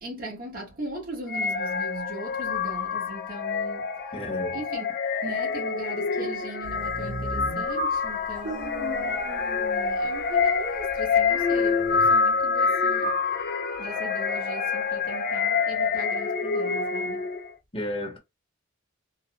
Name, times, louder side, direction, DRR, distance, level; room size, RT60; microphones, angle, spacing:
voice 1, 0.0-3.9 4.5-4.9 5.2-9.3 9.9-13.2 13.8-17.3, right 2 dB, 45° right, 1.4 m, -39 dB
sound 1, 1.3-17.5, left 5 dB, 50° left, 0.6 m, -26 dB
voice 2, 4.1-4.6 17.7-18.2, equal, 25° left, 1.1 m, -32 dB
sound 2, 6.6-10.4 10.8-12.0, right 1 dB, 65° right, 1.4 m, -37 dB
4.0 x 2.4 x 2.3 m
head